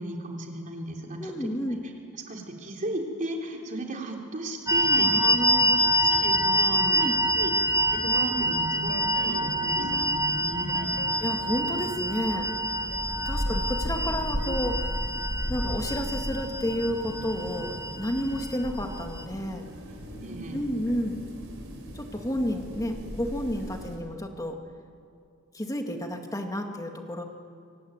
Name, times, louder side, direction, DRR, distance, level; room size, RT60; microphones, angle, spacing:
voice 1, 0.0-1.5 2.3-5.7 6.1-7.5 7.9-10.9 20.1-20.6, right 1 dB, 40° right, 1 dB, 3.5 m, -35 dB
voice 2, 1.2-1.8 5.0-5.8 6.9-7.1 11.2-12.5 13.3-14.8 15.5-19.7 20.5-21.2 21.9-24.6 25.5-27.2, equal, 15° left, 4 dB, 2.0 m, -31 dB
sound 1, 4.7-19.2, equal, 15° right, 1.0 m, -26 dB
sound 2, 7.9-14.8 15.0-15.3, left 1 dB, 60° left, 2.8 m, -44 dB
sound 3, 12.9-24.0, equal, 70° right, 4.4 m, -36 dB
25.0 x 17.0 x 9.5 m, 2.4 s
head